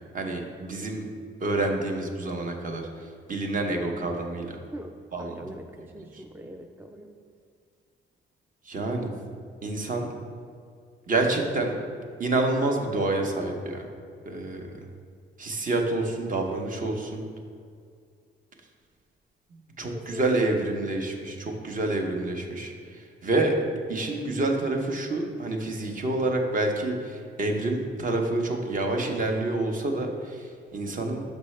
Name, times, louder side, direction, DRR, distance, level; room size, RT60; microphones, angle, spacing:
voice 1, 0.1-1.1 1.4-4.6 5.1-5.4 8.6-9.1 9.6-10.1 11.1-11.8 12.2-13.9 14.3-14.9 15.4-17.2 19.8-23.6 23.9-31.2, right 2 dB, 40° right, 3 dB, 0.9 m, -28 dB
voice 2, 4.7-7.2 19.9-20.2 21.3-21.6, right 1 dB, 10° right, 4 dB, 0.3 m, -43 dB
6.4 x 5.3 x 3.2 m, 2.2 s
cardioid pair, 90°, 20 cm